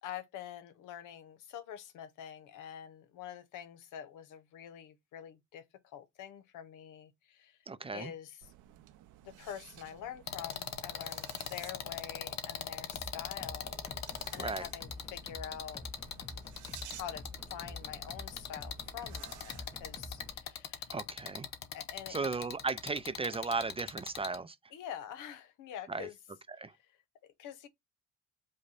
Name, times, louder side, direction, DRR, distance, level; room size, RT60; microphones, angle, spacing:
voice 1, 0.0-7.6 7.9-8.4 9.2-13.8 14.3-15.8 16.8-17.3 17.5-20.9 21.7-22.3 24.7-26.1 27.2-27.7, left 9 dB, 90° left, 0.8 m, -46 dB
voice 2, 7.7-8.1 14.4-14.7 20.9-21.5 22.1-24.6 25.9-26.1 26.6-26.7, right 4 dB, 20° right, 0.4 m, -36 dB
sound 1, 8.4-20.3, right 13 dB, 80° right, 0.5 m, -55 dB
sound 2, 10.3-24.4, left 8 dB, 60° left, 0.8 m, -41 dB
sound 3, 12.9-20.4, left 2 dB, 15° left, 0.8 m, -48 dB
5.1 x 2.2 x 4.2 m
cardioid pair, 90°, 30 cm